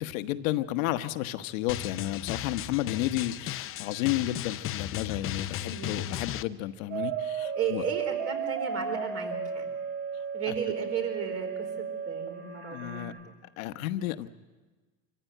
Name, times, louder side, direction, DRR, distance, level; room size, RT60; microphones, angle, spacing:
voice 1, 0.0-7.8 10.5-10.6 12.7-13.1 13.6-14.3, left 14 dB, 85° left, 10 dB, 1.2 m, -32 dB
Drum, 1.7-6.4, left 13 dB, 35° left, 0.7 m, -36 dB
voice 2, 5.5-6.1 7.5-9.7 10.3-13.4, right 7 dB, 40° right, 5 dB, 4.5 m, -35 dB
sound 1, 6.9-13.1, right 6 dB, 70° right, 5.1 m, -34 dB
25.5 x 15.0 x 9.2 m, 1.3 s
supercardioid pair, 125°, 39 cm